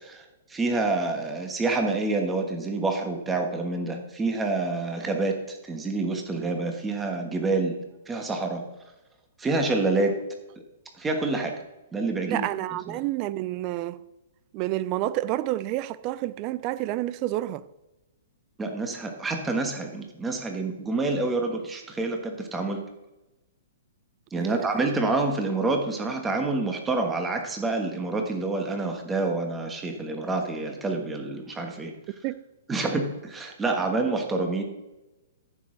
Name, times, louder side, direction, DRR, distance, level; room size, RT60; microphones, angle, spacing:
voice 1, 0.0-7.8 8.1-8.6 9.4-10.1 11.0-11.5 11.9-12.5 12.9-13.0 18.6-22.8 24.3-31.9 32.7-34.6, right 3 dB, 10° right, 1.4 m, -27 dB
voice 2, 12.3-14.0 14.5-17.6 24.3-24.9 32.2-32.4, right 15 dB, 35° right, 0.5 m, -29 dB
14.0 x 6.3 x 3.9 m
hypercardioid pair, 140°, 0 cm